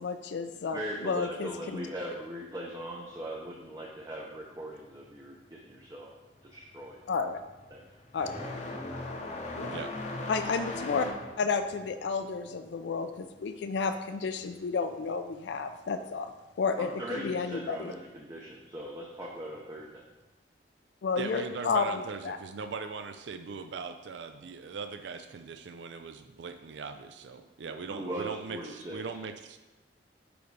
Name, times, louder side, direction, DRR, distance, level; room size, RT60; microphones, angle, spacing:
voice 1, 0.0-1.9 7.1-7.4 8.1-8.3 9.6-9.8 10.3-11.1 11.4-16.3 16.6-17.9 21.0-22.4, left 5 dB, 70° left, 9 dB, 0.4 m, -31 dB
voice 2, 0.7-6.1 6.4-7.0 7.7-7.8 16.8-20.0 27.6-29.2, right 1 dB, 20° right, -2 dB, 0.6 m, -40 dB
sound 1, 5.6-5.9 6.2-14.6 14.8-15.9 16.9-17.0 17.8-17.9 19.6-19.8, left 2 dB, 40° left, 0.7 m, -40 dB
voice 3, 21.2-29.6, right 5 dB, 75° right, 8 dB, 0.4 m, -40 dB
5.1 x 5.1 x 4.7 m, 1.1 s
head